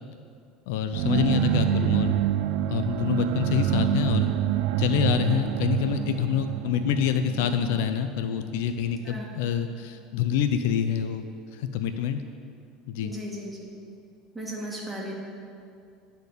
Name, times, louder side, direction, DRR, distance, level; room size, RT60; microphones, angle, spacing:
voice 1, 0.7-2.1 2.7-4.3 4.8-11.3 11.5-12.2 12.9-13.1, left 8 dB, 80° left, 9 dB, 0.4 m, -26 dB
sound 1, 0.9-8.7, right 11 dB, 70° right, 0.3 m, -27 dB
voice 2, 1.3-1.7 9.0-9.3 13.0-13.6 14.3-15.1, right 1 dB, 5° right, -4 dB, 2.0 m, -36 dB
9.8 x 4.3 x 6.7 m, 2.4 s
supercardioid pair, 115°, 0 cm